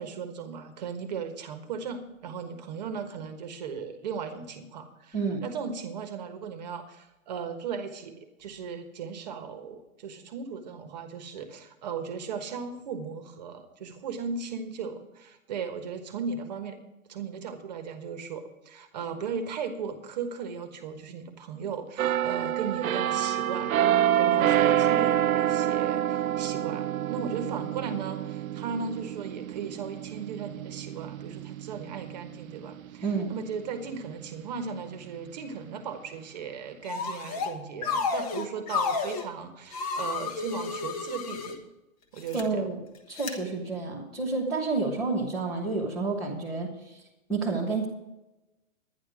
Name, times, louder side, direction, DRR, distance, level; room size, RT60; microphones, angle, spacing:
voice 1, 0.0-16.8 17.1-23.8 24.1-41.6 42.1-42.7, right 6 dB, 30° right, 8 dB, 1.3 m, -37 dB
voice 2, 5.1-5.4 33.0-33.3 42.3-42.8 43.1-47.0 47.3-47.9, right 4 dB, ahead, -9 dB, 0.7 m, -29 dB
sound 1, 22.0-33.5 34.0-34.2, right 11 dB, 80° right, 0.6 m, -27 dB
sound 2, 36.9-37.5 37.8-39.2 39.7-41.5 42.2-42.4 43.2-43.3, left 5 dB, 25° left, 1.1 m, -31 dB
11.0 x 10.5 x 4.9 m, 0.98 s
hypercardioid pair, 170°, 42 cm